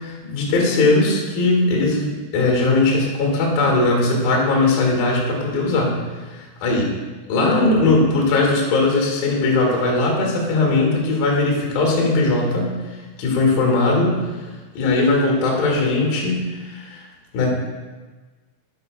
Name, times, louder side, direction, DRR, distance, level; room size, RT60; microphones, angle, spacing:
voice 1, 0.0-6.0 6.3-6.9 7.3-12.8 13.2-14.5 14.7-17.0 17.3-17.5, left 2 dB, 60° left, -1 dB, 2.9 m, -19 dB
9.4 x 7.9 x 2.3 m, 1.3 s
omnidirectional pair, 5.7 m